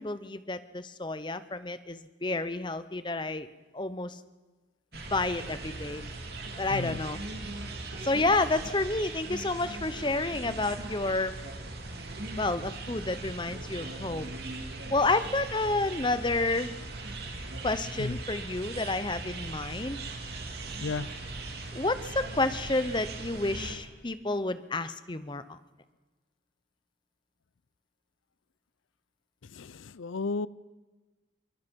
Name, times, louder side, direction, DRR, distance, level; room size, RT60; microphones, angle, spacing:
voice 1, 0.0-3.5 3.7-4.2 4.9-6.0 6.6-7.2 8.0-11.4 12.4-14.3 14.9-16.7 17.6-20.0 21.7-25.6, left 2 dB, 25° left, 12 dB, 0.8 m, -30 dB
sound 1, 4.9-23.7, right 2 dB, 55° right, 2.9 m, -39 dB
voice 2, 6.7-7.0 18.0-18.2 20.8-21.1 29.4-30.5, left 4 dB, 85° left, 19 dB, 0.6 m, -34 dB
24.5 x 23.5 x 5.4 m, 1.3 s
head